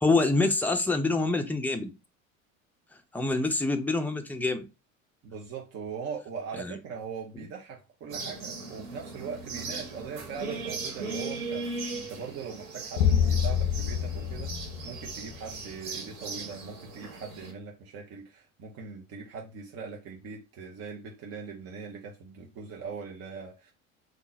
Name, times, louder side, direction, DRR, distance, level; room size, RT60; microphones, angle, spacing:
voice 1, 0.0-1.9 3.1-4.6 6.6-6.8, left 3 dB, 5° left, 0.5 m, -26 dB
voice 2, 5.2-11.7 12.0-23.7, right 6 dB, 35° right, 0.9 m, -41 dB
sound 1, 8.1-17.5, right 3 dB, 70° right, 1.4 m, -38 dB
sound 2, 13.0-15.6, left 8 dB, 55° left, 0.4 m, -26 dB
3.7 x 2.4 x 4.0 m
figure-of-eight pair, 75°, 41 cm